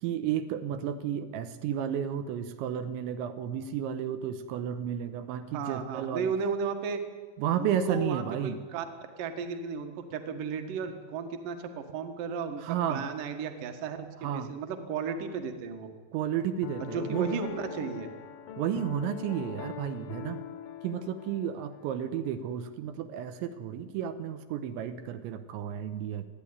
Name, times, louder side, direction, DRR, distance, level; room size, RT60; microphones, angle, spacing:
voice 1, 0.0-6.3 7.4-8.6 12.6-13.1 14.2-14.5 16.1-17.4 18.6-20.4 20.8-26.3, right 9 dB, 85° right, 9 dB, 3.2 m, -32 dB
voice 2, 5.5-7.0 7.6-8.8 9.2-15.9 16.8-18.1, right 5 dB, 55° right, 6 dB, 2.7 m, -34 dB
Piano, 16.6-21.9, left 9 dB, 75° left, 2.2 m, -43 dB
22.5 x 14.0 x 9.7 m, 1.5 s
omnidirectional pair, 5.3 m